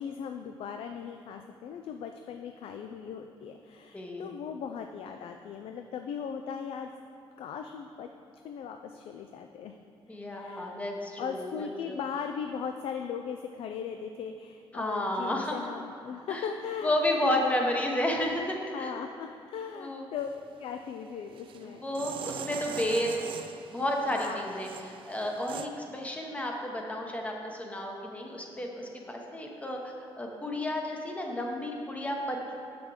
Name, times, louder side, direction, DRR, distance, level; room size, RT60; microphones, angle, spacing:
voice 1, 0.0-6.9 7.4-8.1 8.4-9.7 10.1-10.8 11.2-17.0 17.2-17.7 18.7-20.3 20.6-21.8 24.1-24.4, left 7 dB, 70° left, 5 dB, 0.4 m, -38 dB
voice 2, 3.9-4.3 10.1-11.9 14.7-15.6 16.3-16.5 16.8-18.9 19.8-20.0 21.6-23.2 23.7-32.5, left 1 dB, 15° left, 1 dB, 0.9 m, -32 dB
sound 1, 20.2-20.6 21.3-25.7, right 8 dB, 60° right, 0.4 m, -42 dB
7.1 x 6.0 x 4.9 m, 2.8 s
cardioid pair, 145°, 10 cm